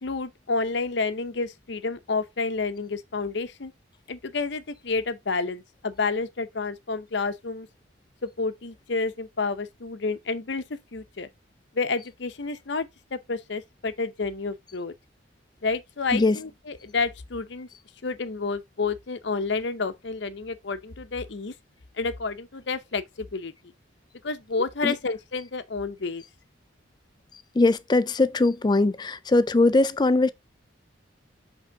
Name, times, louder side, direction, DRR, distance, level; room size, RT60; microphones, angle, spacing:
voice 1, 0.0-3.7 4.1-7.7 8.2-10.6 10.9-11.3 11.7-14.9 15.6-17.7 18.0-21.5 22.0-23.5 24.2-26.2, left 4 dB, 60° left, 0.7 m, -30 dB
voice 2, 27.6-30.3, left 2 dB, 20° left, 0.3 m, -21 dB
7.9 x 3.5 x 3.4 m
head